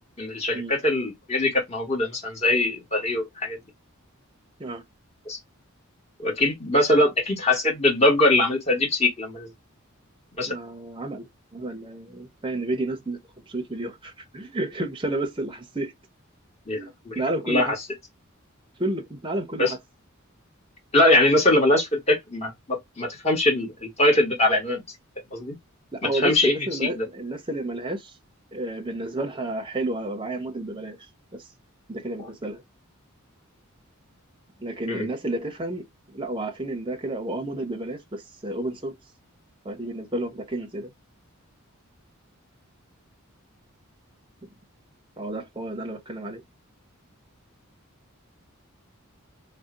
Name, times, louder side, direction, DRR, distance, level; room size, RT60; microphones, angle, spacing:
voice 1, 0.2-3.6 5.2-5.4 6.2-9.5 10.4-10.5 16.7-16.8 17.0-17.2 17.5-17.7 19.6-19.7 20.9-24.8 25.3-25.5 26.0-26.5 26.8-27.0 34.9-35.1, left 1 dB, 30° left, 1.5 m, -22 dB
voice 2, 10.5-15.9 16.7-16.9 17.1-17.7 18.8-19.8 25.9-28.1 28.5-31.0 31.3-31.4 31.9-32.6 34.6-38.9 39.6-40.9 44.4-44.5 45.2-46.4, right 1 dB, 25° right, 0.7 m, -31 dB
2.7 x 2.1 x 3.6 m
head